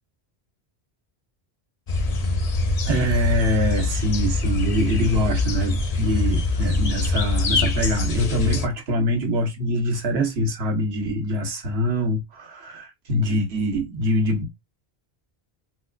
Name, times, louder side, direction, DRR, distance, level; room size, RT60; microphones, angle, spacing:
sound 1, 1.9-8.7, left 3 dB, 45° left, 0.6 m, -24 dB
voice 1, 2.9-14.5, equal, 80° right, 1.3 m, -24 dB
4.1 x 2.2 x 2.3 m
omnidirectional pair, 1.1 m